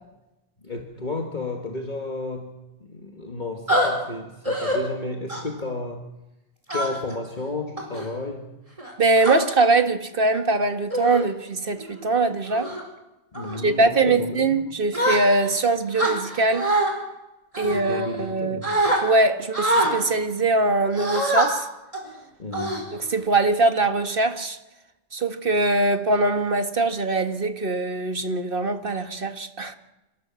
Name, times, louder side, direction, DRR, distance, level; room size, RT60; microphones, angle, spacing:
voice 1, 0.6-2.5 2.8-6.0 6.7-8.5 13.3-14.6 17.6-18.7 22.4-22.9, left 2 dB, 40° left, 2.0 m, -32 dB
sound 1, 3.7-3.9 4.5-4.8 5.3-5.6 6.7-7.1 7.8-8.1 8.8-9.4 10.2-10.4 10.9-11.3 11.8-12.0 12.5-12.8 13.3-13.6 14.9-15.6 16.0-16.9 17.5-18.3 18.6-19.0 19.5-19.9 20.9-21.5 21.9-22.1 22.5-23.2, right 1 dB, 30° right, 5.0 m, -24 dB
voice 2, 9.0-12.7 13.6-16.7 17.6-18.6 19.0-21.7 22.9-24.6 25.1-29.7, right 2 dB, 50° right, 1.8 m, -22 dB
26.5 x 17.5 x 7.7 m
omnidirectional pair, 1.2 m